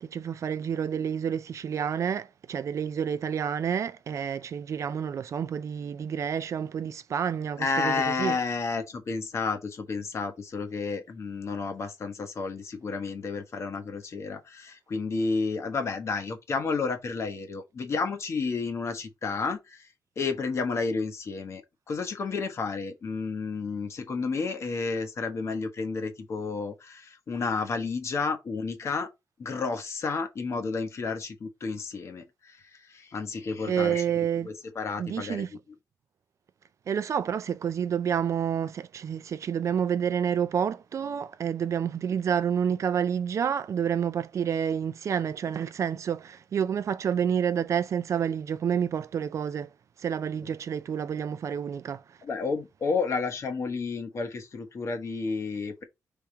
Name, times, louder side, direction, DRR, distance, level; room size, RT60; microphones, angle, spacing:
voice 1, 0.0-8.4 33.6-34.5 35.0-35.5 36.9-49.7 50.0-52.2, right 8 dB, 50° right, 0.4 m, -29 dB
voice 2, 7.6-29.1 29.4-34.0 34.4-35.5 50.4-50.5 52.2-55.9, left 4 dB, 45° left, 1.1 m, -31 dB
3.5 x 3.1 x 4.5 m
wide cardioid pair, 145°, 6 cm